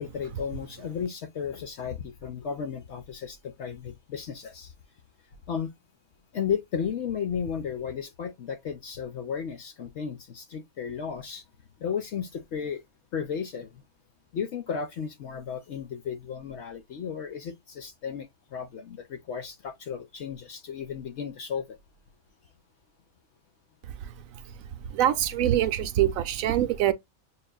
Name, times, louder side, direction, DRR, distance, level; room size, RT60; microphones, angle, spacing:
voice 1, 0.0-4.7 5.5-5.7 6.3-11.4 11.8-12.8 13.1-13.8 14.3-21.8, left 7 dB, 60° left, 0.8 m, -34 dB
voice 2, 24.9-26.9, right 12 dB, 70° right, 0.9 m, -24 dB
6.6 x 2.4 x 2.3 m
omnidirectional pair, 1.5 m